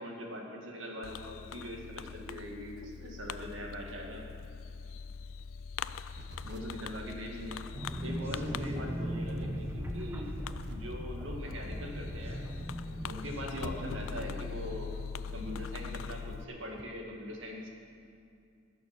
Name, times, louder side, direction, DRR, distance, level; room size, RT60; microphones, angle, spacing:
voice 1, 0.0-4.2 6.5-7.7 8.0-10.3 10.7-12.5 13.0-14.9 15.3-17.7, equal, 75° right, 0 dB, 2.0 m, -41 dB
Fireworks, 1.0-16.4, left 6 dB, 90° left, 0.4 m, -42 dB
sound 1, 6.1-16.8, right 2 dB, 55° right, 0.9 m, -52 dB
sound 2, 7.7-14.3, right 1 dB, 10° right, 1.0 m, -39 dB
17.5 x 6.9 x 6.6 m, 2.4 s
head